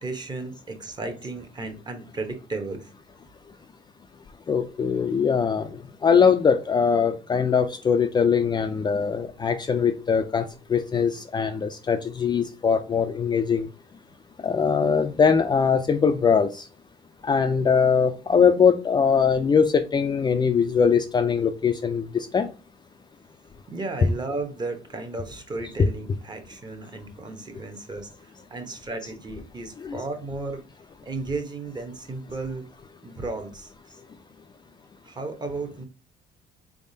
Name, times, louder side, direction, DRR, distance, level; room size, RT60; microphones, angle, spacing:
voice 1, 0.0-2.9 23.7-30.6 31.0-32.6 33.0-33.7 35.0-35.9, right 3 dB, 25° right, 0.9 m, -34 dB
voice 2, 4.5-5.7 6.0-10.4 10.7-13.7 14.4-16.6 17.2-22.5 29.8-30.0, left 6 dB, 25° left, 0.4 m, -21 dB
4.0 x 3.5 x 2.7 m
cardioid pair, 110°, 17 cm